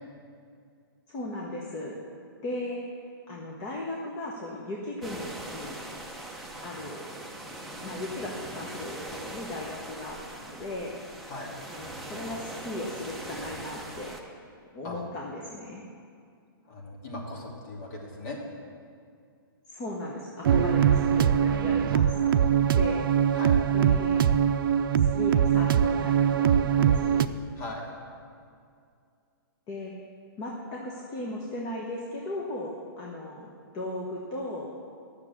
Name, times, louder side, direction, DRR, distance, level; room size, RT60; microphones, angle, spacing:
voice 1, 1.1-1.9 2.4-2.8 3.3-5.8 6.6-7.1 7.8-11.0 11.7-14.2 14.7-15.8 19.7-23.0 23.7-24.2 25.0-27.3 29.7-29.9 30.4-33.5 33.7-34.7, left 1 dB, 30° left, -3 dB, 1.3 m, -37 dB
sound 1, 5.0-14.2, right 1 dB, ahead, 0.9 m, -41 dB
voice 2, 11.3-11.6 14.8-15.0 16.7-18.4 23.3-23.6 27.6-27.9, left 2 dB, 45° left, -2 dB, 2.8 m, -39 dB
sound 2, 20.4-27.3, right 8 dB, 60° right, 0.5 m, -22 dB
10.5 x 6.7 x 7.3 m, 2.3 s
hypercardioid pair, 145°, 12 cm